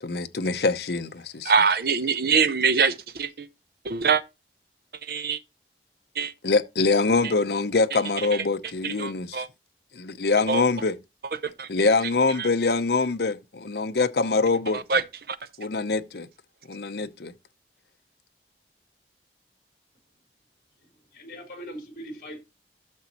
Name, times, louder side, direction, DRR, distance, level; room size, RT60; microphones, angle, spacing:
voice 1, 0.0-1.5 6.4-9.4 9.9-11.0 11.7-14.8 15.6-16.3 16.7-17.3, left 3 dB, 70° left, 0.8 m, -24 dB
voice 2, 1.4-3.5 3.8-4.2 5.0-5.4 6.1-6.3 7.2-7.3 7.9-8.0 8.3-8.4 8.8-9.5 10.5-10.6 11.2-11.7 12.4-12.5 14.7-15.4, right 5 dB, 55° right, 0.7 m, -24 dB
voice 3, 21.1-22.4, equal, 50° left, 3.7 m, -40 dB
12.0 x 7.2 x 2.9 m
head